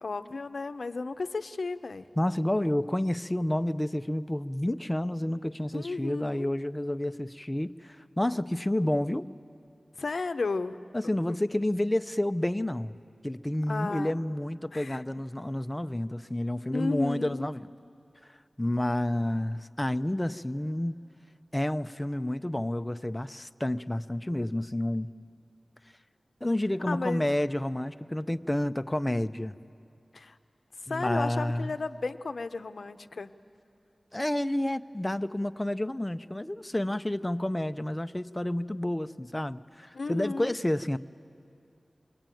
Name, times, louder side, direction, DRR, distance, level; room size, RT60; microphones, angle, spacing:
voice 1, 0.0-2.1 5.7-6.5 10.0-10.8 11.3-11.4 13.7-14.1 14.7-15.0 16.7-17.5 26.9-27.3 30.1-30.4 30.9-33.3 39.9-40.5, left 3 dB, 80° left, 10 dB, 0.7 m, -33 dB
voice 2, 2.2-9.4 10.9-12.9 13.2-17.7 18.6-21.0 21.5-25.1 26.4-29.6 30.9-31.7 34.1-41.0, left 1 dB, 20° left, 10 dB, 0.6 m, -30 dB
28.0 x 21.5 x 9.1 m, 2.5 s
wide cardioid pair, 65°, 0 cm